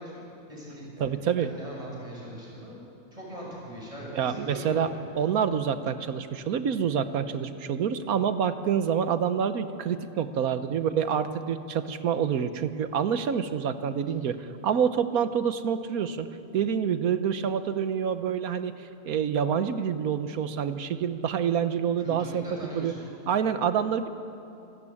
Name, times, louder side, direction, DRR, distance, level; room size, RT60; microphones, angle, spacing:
voice 1, 0.0-1.1 1.4-2.9 3.1-5.0 22.0-23.1, equal, 25° right, -5 dB, 6.8 m, -40 dB
voice 2, 1.0-1.6 4.1-4.9 5.2-18.7 19.0-22.4 22.7-22.9 23.3-24.1, right 7 dB, 80° right, 11 dB, 1.4 m, -27 dB
26.5 x 13.5 x 8.7 m, 2.7 s
omnidirectional pair, 1.5 m